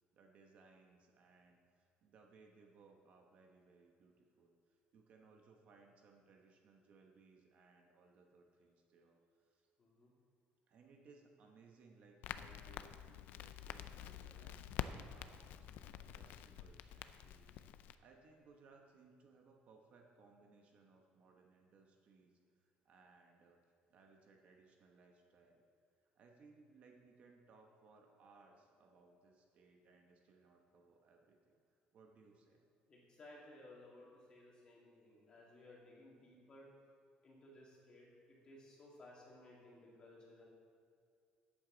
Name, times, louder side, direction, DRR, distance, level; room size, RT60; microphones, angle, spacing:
voice 1, 0.0-9.7 10.7-15.7 16.1-17.5 18.0-22.3 22.6-23.6 23.9-25.6 26.1-31.6 31.9-32.7, right 4 dB, 45° right, 2 dB, 1.0 m, -65 dB
voice 2, 9.8-10.1 32.9-36.7 37.2-40.4, left 1 dB, 25° left, -4 dB, 2.3 m, -59 dB
Crackle, 12.2-17.9, left 10 dB, 65° left, 0.4 m, -48 dB
13.5 x 8.3 x 3.9 m, 2.3 s
cardioid pair, 175°, 3 cm